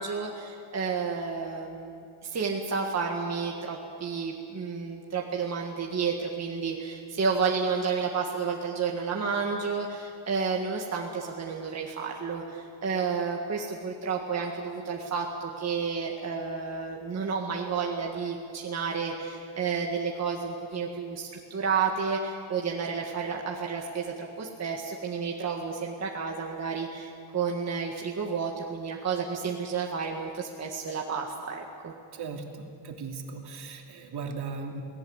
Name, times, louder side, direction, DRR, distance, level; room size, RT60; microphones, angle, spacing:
voice 1, 0.0-31.9, right 5 dB, 35° right, 0 dB, 1.8 m, -31 dB
voice 2, 32.1-34.8, right 4 dB, 55° right, 2 dB, 2.9 m, -38 dB
28.5 x 18.5 x 8.1 m, 2.5 s
cardioid pair, 160°, 47 cm